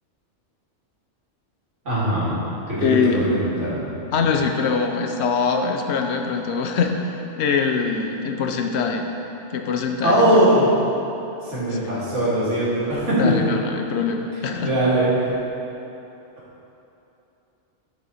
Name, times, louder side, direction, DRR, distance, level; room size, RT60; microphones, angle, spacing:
voice 1, 1.8-2.4 2.7-3.9 10.0-10.7 11.4-13.3 14.6-15.4, right 1 dB, 80° right, -9 dB, 2.3 m, -20 dB
voice 2, 2.8-3.3 4.1-9.1 9.5-10.4 11.7-11.8 13.2-14.7, left 5 dB, 70° left, 4 dB, 0.8 m, -23 dB
9.2 x 4.8 x 4.1 m, 2.9 s
omnidirectional pair, 1.2 m